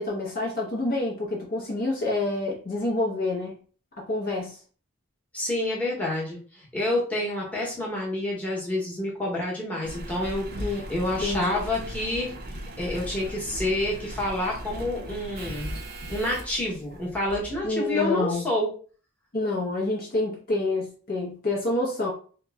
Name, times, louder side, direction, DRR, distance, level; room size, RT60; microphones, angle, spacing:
voice 1, 0.0-3.6 4.0-4.6 10.6-11.6 17.6-18.4 19.3-22.1, left 2 dB, 45° left, -2 dB, 0.6 m, -28 dB
voice 2, 5.3-15.8 16.1-18.7, left 1 dB, 5° left, -5 dB, 1.0 m, -28 dB
Engine, 9.8-17.7 18.3-18.4, right 1 dB, 45° right, 0.5 m, -38 dB
2.9 x 2.0 x 3.4 m, 0.41 s
head